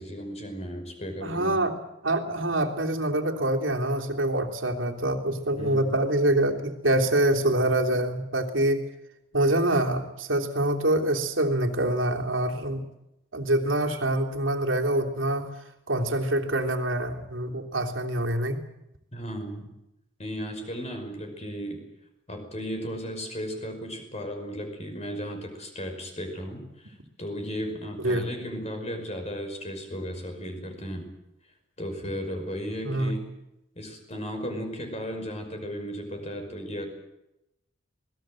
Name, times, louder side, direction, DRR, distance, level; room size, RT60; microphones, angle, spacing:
voice 1, 0.0-1.6 5.5-6.0 19.1-19.7 20.2-21.8 22.3-31.1 31.8-33.3 33.8-36.9, equal, 35° left, 5 dB, 5.4 m, -35 dB
voice 2, 1.2-1.7 2.0-8.8 9.3-12.8 13.3-15.5 15.9-18.6 28.0-28.3 32.8-33.1, right 1 dB, 80° right, 3 dB, 3.2 m, -25 dB
26.5 x 19.5 x 7.7 m, 0.88 s
head